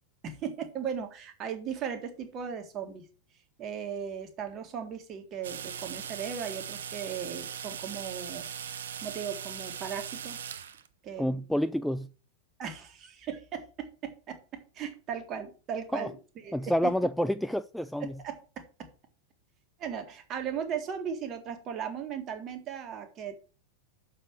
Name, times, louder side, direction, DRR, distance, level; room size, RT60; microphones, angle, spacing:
voice 1, 0.2-3.1 3.6-8.5 9.0-10.7 11.0-11.4 12.6-14.4 14.7-16.9 18.0-18.9 19.8-23.4, right 7 dB, 30° right, 1.7 m, -37 dB
sound 1, 5.4-10.9, right 8 dB, 65° right, 0.7 m, -39 dB
voice 2, 11.2-12.1 15.9-16.1 16.5-18.1, equal, ahead, 0.3 m, -28 dB
6.7 x 5.7 x 6.2 m
figure-of-eight pair, 90°, 0 cm